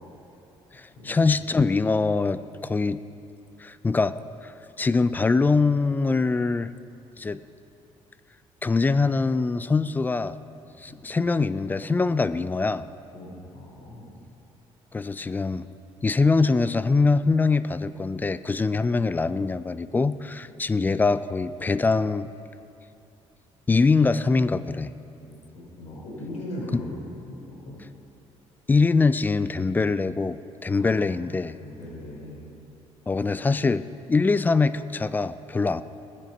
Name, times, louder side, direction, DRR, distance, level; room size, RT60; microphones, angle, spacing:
voice 1, 0.7-3.0 3.6-4.1 4.4-4.5 4.8-6.7 7.2-7.4 8.6-10.4 10.8-12.9 14.9-15.6 16.0-22.3 23.7-24.9 26.7-26.8 28.7-31.6 33.1-35.8, left 4 dB, 15° left, 14 dB, 0.4 m, -23 dB
voice 2, 13.1-14.1 25.2-27.8 30.7-31.0 31.6-32.5, left 1 dB, 75° left, -3 dB, 3.6 m, -39 dB
20.0 x 7.6 x 5.4 m, 2.7 s
cardioid pair, 120°, 11 cm